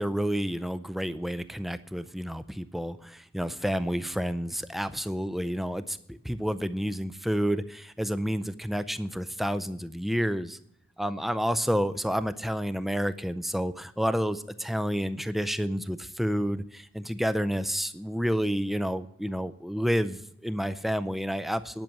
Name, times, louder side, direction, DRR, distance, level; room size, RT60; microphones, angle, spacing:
voice 1, 0.0-10.6 11.0-21.8, equal, ahead, 13 dB, 0.5 m, -30 dB
10.5 x 6.7 x 8.9 m, 0.72 s
head